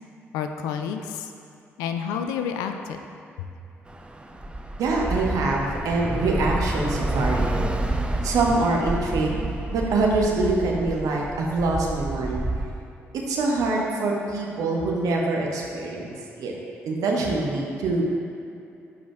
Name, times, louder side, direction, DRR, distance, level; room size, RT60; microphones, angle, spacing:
voice 1, 0.3-1.3 1.8-3.0 3.4-3.5, left 7 dB, 70° left, 6 dB, 0.4 m, -29 dB
Bus / Traffic noise roadway noise, 3.9-12.7, right 1 dB, 15° right, 0.6 m, -29 dB
voice 2, 4.8-7.5 8.2-9.4 9.7-12.4 13.3-16.5 16.8-18.1, right 3 dB, 60° right, -1 dB, 1.0 m, -24 dB
11.5 x 5.0 x 2.3 m, 2.7 s
figure-of-eight pair, 40°, 7 cm